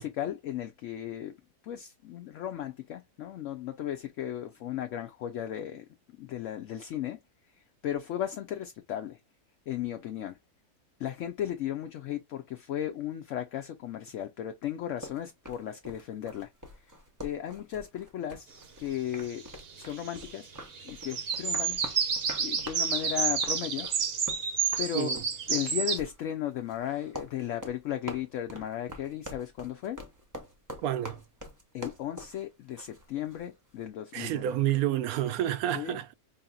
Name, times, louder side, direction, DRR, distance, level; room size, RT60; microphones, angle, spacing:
voice 1, 0.0-1.4 1.6-5.8 6.2-7.2 7.8-9.2 9.7-10.4 11.0-16.5 17.2-18.5 18.8-19.5 19.8-20.5 20.8-21.8 22.4-23.9 24.8-25.2 25.5-30.0 31.7-34.5 35.7-36.0, left 11 dB, 65° left, 0.8 m, -35 dB
sound 1, 15.0-33.5, equal, 15° right, 0.7 m, -45 dB
sound 2, 19.4-20.3 20.6-26.0, right 6 dB, 50° right, 0.8 m, -30 dB
voice 2, 30.8-31.2 34.1-36.1, right 12 dB, 75° right, 1.0 m, -29 dB
4.7 x 2.7 x 2.3 m
omnidirectional pair, 1.6 m